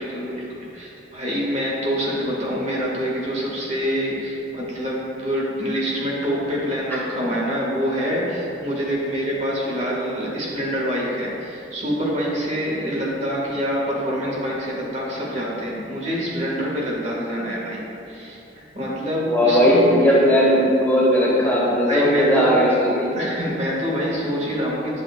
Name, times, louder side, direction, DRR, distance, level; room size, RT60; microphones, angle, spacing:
voice 1, 0.0-17.8 18.1-19.8 21.8-22.6 23.1-25.0, equal, 40° right, -4 dB, 1.6 m, -26 dB
voice 2, 19.3-23.1, equal, 10° left, -6 dB, 1.3 m, -17 dB
11.0 x 7.3 x 2.3 m, 2.8 s
head